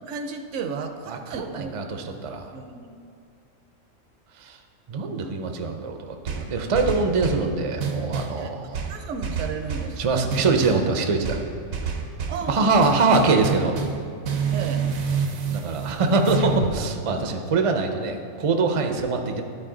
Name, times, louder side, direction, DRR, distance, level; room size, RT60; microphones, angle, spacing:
voice 1, 0.1-2.2 2.5-3.0 8.4-8.5 8.9-10.0 12.3-12.9 14.5-14.9, right 5 dB, 70° right, 7 dB, 0.9 m, -33 dB
voice 2, 1.1-2.5 4.3-4.6 4.9-8.9 10.0-11.4 12.5-13.8 15.1-15.2 15.5-19.4, right 3 dB, 45° right, 4 dB, 0.4 m, -23 dB
sound 1, 6.3-7.5 7.8-8.4 8.7-9.9 10.3-10.9 11.2-12.4 12.8-14.0 14.2-16.8, right 5 dB, 85° right, 1.2 m, -28 dB
11.5 x 4.3 x 3.8 m, 2.5 s
omnidirectional pair, 1.4 m